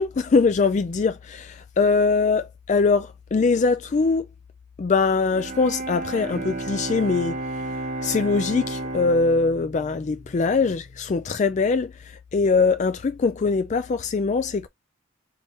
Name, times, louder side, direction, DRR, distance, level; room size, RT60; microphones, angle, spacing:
voice 1, 0.0-4.3 4.8-7.4 8.0-14.7, left 4 dB, 35° left, 0.3 m, -22 dB
Bowed string instrument, 5.2-11.3, right 2 dB, 35° right, 0.7 m, -33 dB
4.3 x 3.1 x 3.0 m
head